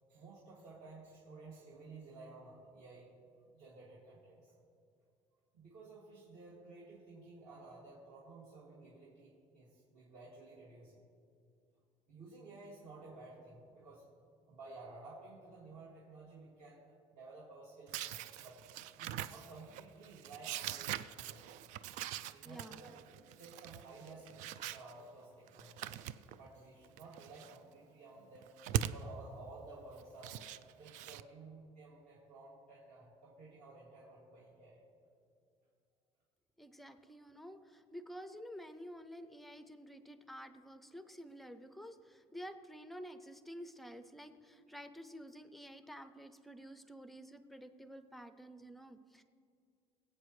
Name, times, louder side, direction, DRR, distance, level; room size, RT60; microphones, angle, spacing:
voice 1, 0.1-3.1 3.4-4.5 5.5-11.0 12.1-14.1 14.5-18.6 19.0-21.5 22.3-23.0 23.4-28.5 28.9-30.4 30.8-34.8, right 3 dB, 60° right, -6 dB, 2.3 m, -54 dB
sound 1, 17.9-24.9 25.5-26.5 26.8-27.6 28.3-29.0 30.0-31.2, right 12 dB, 85° right, 0.4 m, -42 dB
voice 2, 22.4-22.8 36.6-49.2, equal, ahead, 10 dB, 0.5 m, -50 dB
23.5 x 8.4 x 3.2 m, 2.4 s
cardioid pair, 175°, 12 cm